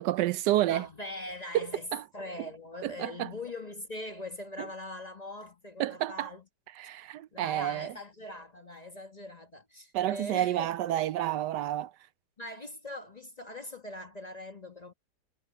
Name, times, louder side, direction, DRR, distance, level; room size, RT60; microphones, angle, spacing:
voice 1, 0.0-0.9 1.5-1.7 1.9-2.0 2.8-3.3 5.8-6.3 6.8-7.9 9.9-11.9, right 13 dB, 75° right, 1.1 m, -29 dB
voice 2, 0.7-6.4 7.3-10.7 12.4-14.9, left 1 dB, 25° left, 1.2 m, -42 dB
omnidirectional pair, 1.9 m